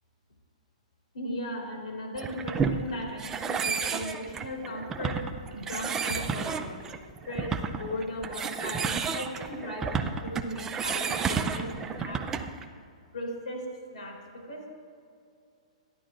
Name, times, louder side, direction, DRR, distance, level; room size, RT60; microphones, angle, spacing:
voice 1, 1.1-5.3 5.5-6.8 7.2-12.3 13.1-13.7 13.9-14.7, left 1 dB, 75° left, 0 dB, 3.7 m, -37 dB
sound 1, 2.2-12.6, right 6 dB, 10° right, 0.5 m, -31 dB
27.0 x 11.0 x 2.5 m, 2.3 s
hypercardioid pair, 160°, 4 cm